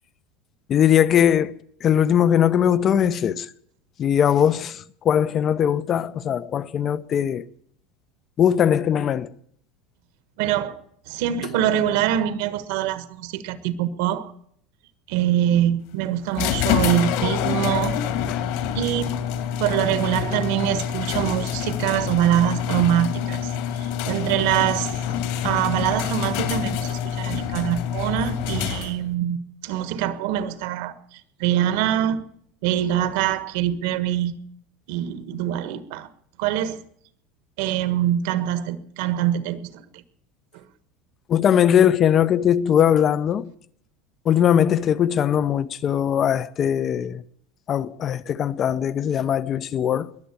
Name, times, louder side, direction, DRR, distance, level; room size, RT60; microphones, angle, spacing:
voice 1, 0.7-3.5 4.0-7.5 8.4-9.3 18.3-18.4 41.3-43.5 44.3-47.2 47.7-50.1, left 9 dB, 25° left, 0.6 m, -20 dB
voice 2, 10.4-10.8 11.1-14.3 15.1-18.0 18.7-19.2 19.6-23.5 23.8-25.0 25.4-32.2 32.6-34.3 34.9-36.1 36.4-36.8 37.6-40.0 40.5-40.6, right 11 dB, 60° right, 1.4 m, -24 dB
sound 1, 16.4-29.1, left 9 dB, 60° left, 2.5 m, -26 dB
21.5 x 8.0 x 8.4 m
supercardioid pair, 170°, 0 cm